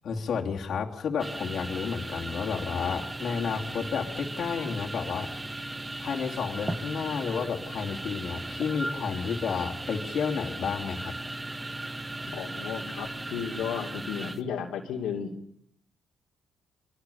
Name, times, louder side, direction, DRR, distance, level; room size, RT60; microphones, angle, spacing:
voice 1, 0.0-5.3 6.0-11.1, left 6 dB, 60° left, 1 dB, 2.9 m, -31 dB
sound 1, 1.2-14.4, right 1 dB, 15° right, 1.2 m, -37 dB
voice 2, 12.3-15.4, left 7 dB, 85° left, 0 dB, 2.8 m, -34 dB
24.5 x 23.0 x 7.1 m, 0.75 s
cardioid pair, 90°, 0 cm